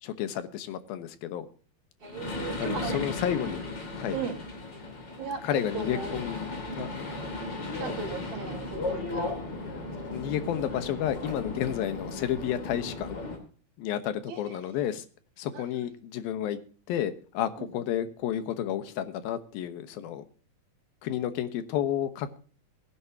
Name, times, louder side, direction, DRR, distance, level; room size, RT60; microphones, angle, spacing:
voice 1, 0.0-1.5 2.6-3.6 3.9-4.2 5.4-6.9 10.1-13.2 13.8-15.1 15.4-16.6 16.9-20.2 21.0-22.4, left 10 dB, 90° left, 11 dB, 3.0 m, -31 dB
sound 1, 2.0-13.4, left 2 dB, 30° left, 3.3 m, -36 dB
voice 2, 2.0-3.0 4.1-4.4 5.2-6.2 7.8-9.3 14.3-14.6 15.5-15.7 17.6-17.7, right 6 dB, 85° right, -2 dB, 4.7 m, -36 dB
21.0 x 10.5 x 2.8 m, 0.39 s
omnidirectional pair, 4.1 m